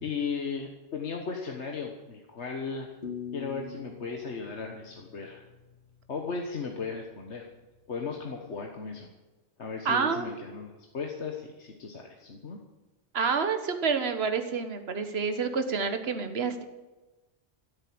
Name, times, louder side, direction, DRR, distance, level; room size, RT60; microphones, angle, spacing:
voice 1, 0.0-2.9 3.3-5.4 6.1-7.5 7.9-9.1 9.6-12.6, left 5 dB, 65° left, 2 dB, 1.6 m, -36 dB
sound 1, 3.0-6.0, left 7 dB, 45° left, 1.1 m, -43 dB
voice 2, 9.8-10.3 13.1-16.6, right 5 dB, 55° right, 7 dB, 1.6 m, -28 dB
15.0 x 8.9 x 8.7 m, 1.2 s
omnidirectional pair, 1.3 m